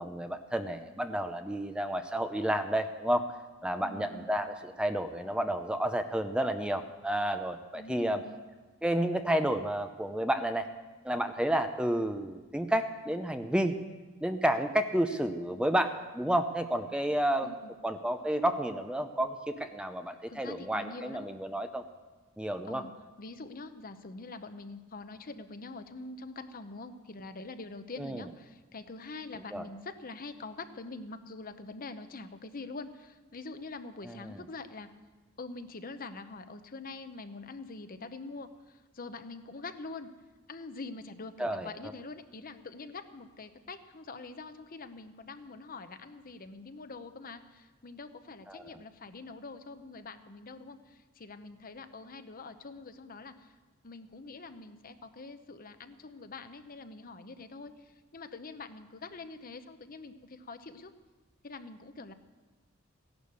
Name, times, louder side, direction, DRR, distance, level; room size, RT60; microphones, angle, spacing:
voice 1, 0.0-3.2 3.6-8.2 8.8-10.7 11.0-13.7 14.2-17.5 17.8-21.8 22.4-22.8 28.0-28.2 29.5-29.6 34.1-34.3 41.4-41.7 48.5-48.6, right 1 dB, 5° right, 7 dB, 0.6 m, -31 dB
voice 2, 3.8-4.3 7.7-8.4 17.4-17.7 20.3-21.2 22.6-22.9 23.2-34.9 35.4-40.1 40.5-53.5 53.8-60.9 61.4-62.1, left 3 dB, 45° left, 9 dB, 0.8 m, -45 dB
16.0 x 11.5 x 6.9 m, 1.3 s
head